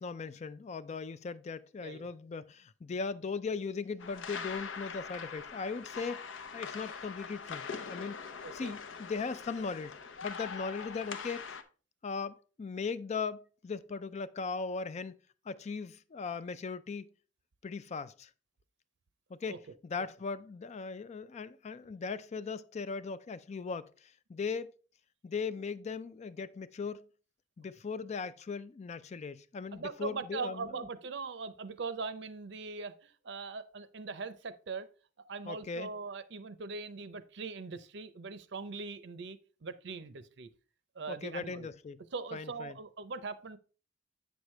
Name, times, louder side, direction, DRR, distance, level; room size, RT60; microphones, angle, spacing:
voice 1, 0.0-9.9 10.2-11.4 12.0-15.2 15.5-17.1 17.6-18.3 19.3-19.6 19.8-24.7 25.2-27.1 27.6-30.7 35.5-35.9 41.1-42.0 42.3-42.8, left 4 dB, 35° left, 0.3 m, -38 dB
sound 1, 4.0-11.6, left 5 dB, 80° left, 0.7 m, -43 dB
voice 2, 8.4-8.7 19.5-19.6 29.7-34.9 35.3-40.5 41.0-41.7 42.1-43.6, right 4 dB, 65° right, 0.6 m, -41 dB
8.0 x 6.3 x 3.2 m
head